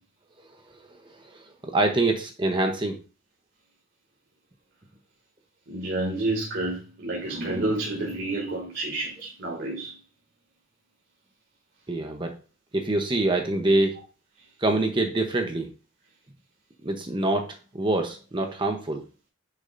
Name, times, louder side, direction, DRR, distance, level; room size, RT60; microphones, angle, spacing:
voice 1, 1.2-3.0 11.9-12.4 12.7-14.0 14.6-15.7 16.8-19.0, right 2 dB, 25° right, 0.8 m, -25 dB
voice 2, 5.7-9.9, right 2 dB, 60° right, 2.2 m, -29 dB
9.5 x 6.6 x 2.6 m
head